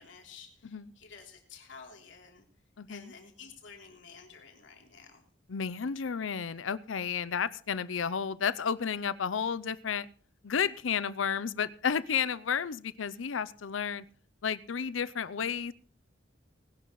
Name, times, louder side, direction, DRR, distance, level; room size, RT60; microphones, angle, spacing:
voice 1, 0.0-2.4 2.9-5.2, left 5 dB, 70° left, 2 dB, 3.3 m, -51 dB
voice 2, 2.8-3.1 5.5-10.0 10.4-14.0 14.4-15.7, left 7 dB, 90° left, 17 dB, 0.6 m, -32 dB
20.0 x 11.0 x 3.1 m, 0.43 s
head